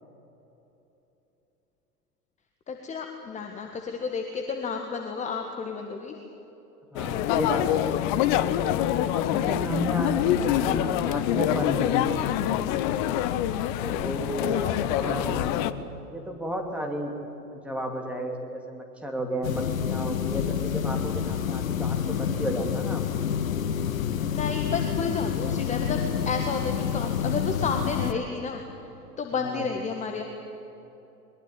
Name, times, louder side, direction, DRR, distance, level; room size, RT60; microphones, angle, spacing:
voice 1, 2.7-6.1 10.3-11.0 14.5-15.3 24.3-26.0 26.2-28.6 29.2-30.2, left 5 dB, 15° left, 3 dB, 1.6 m, -32 dB
voice 2, 6.9-7.9 9.0-12.3 13.8-14.6 14.9-15.7 16.1-17.1 17.5-23.1 29.3-29.6, equal, 5° right, 1 dB, 2.9 m, -33 dB
sound 1, 7.0-15.7, left 11 dB, 30° left, 0.8 m, -25 dB
sound 2, 19.4-28.1, left 8 dB, 60° left, 1.3 m, -28 dB
21.5 x 21.5 x 9.0 m, 3.0 s
figure-of-eight pair, 100°, 47 cm